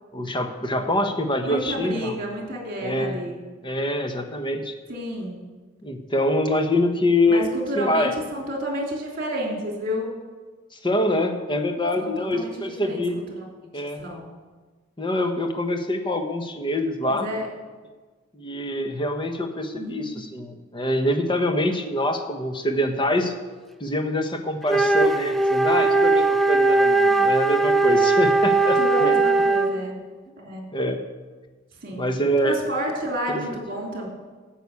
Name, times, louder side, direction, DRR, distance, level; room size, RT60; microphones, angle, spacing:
voice 1, 0.1-2.2 2.8-3.2 3.6-4.7 5.8-7.5 7.8-8.1 10.8-13.2 13.7-14.0 15.0-17.3 18.3-23.3 23.8-29.2 30.7-31.0 32.0-32.6 33.3-33.6, left 1 dB, 20° left, 5 dB, 1.0 m, -25 dB
voice 2, 1.4-3.4 4.9-5.4 7.3-10.1 12.0-13.0 13.3-13.5 14.0-14.3 17.1-17.5 19.7-20.2 28.7-30.0 30.4-30.7 31.8-32.0 32.4-34.1, equal, 45° right, -1 dB, 3.1 m, -30 dB
Wind instrument woodwind instrument, 24.6-29.9, right 3 dB, ahead, 0.4 m, -19 dB
13.0 x 6.1 x 8.3 m, 1.4 s
head